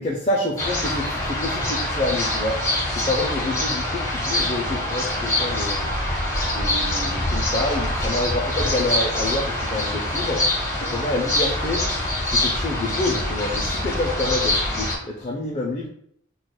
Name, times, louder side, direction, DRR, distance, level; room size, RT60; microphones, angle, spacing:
voice 1, 0.0-2.6 2.9-5.9 6.5-10.4 10.8-11.8 12.3-15.9, left 2 dB, 30° left, -2 dB, 0.4 m, -27 dB
sound 1, 0.6-14.9, left 1 dB, 15° left, 0.9 m, -24 dB
6.2 x 2.3 x 2.2 m, 0.69 s
head